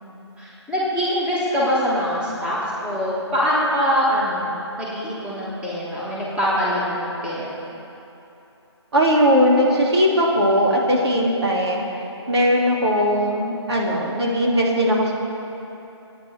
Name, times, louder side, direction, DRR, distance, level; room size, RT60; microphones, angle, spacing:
voice 1, 0.0-4.5 4.8-7.5, equal, 5° right, -8 dB, 2.7 m, -23 dB
voice 2, 8.9-11.9 12.3-15.1, equal, 65° right, -3 dB, 3.3 m, -19 dB
26.0 x 9.6 x 4.7 m, 2.9 s
figure-of-eight pair, 150°, 15 cm